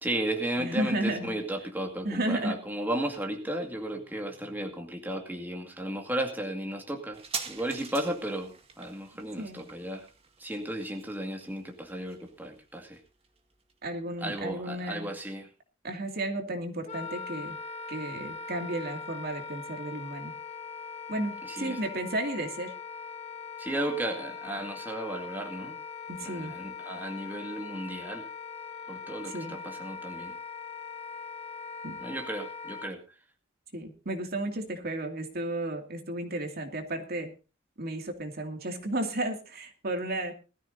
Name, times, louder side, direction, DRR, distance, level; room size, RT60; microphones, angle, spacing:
voice 1, 0.0-10.1 10.4-13.0 14.2-15.5 21.4-21.8 23.6-25.8 26.2-28.3 28.9-30.4 32.0-33.0, right 1 dB, 10° right, 2 dB, 2.1 m, -34 dB
voice 2, 0.6-1.3 2.0-2.5 9.4-9.6 13.8-15.1 15.8-17.6 17.9-20.3 21.1-22.7 26.1-26.5 29.3-29.6 31.8-32.0 33.7-37.3 37.8-40.3, right 1 dB, 50° right, 4 dB, 2.5 m, -33 dB
sound 1, 7.1-14.2 14.5-14.6, right 6 dB, 30° right, 2.1 m, -44 dB
Wind instrument woodwind instrument, 16.9-32.9, left 5 dB, 35° left, 1.2 m, -41 dB
20.5 x 13.5 x 2.7 m, 0.32 s
head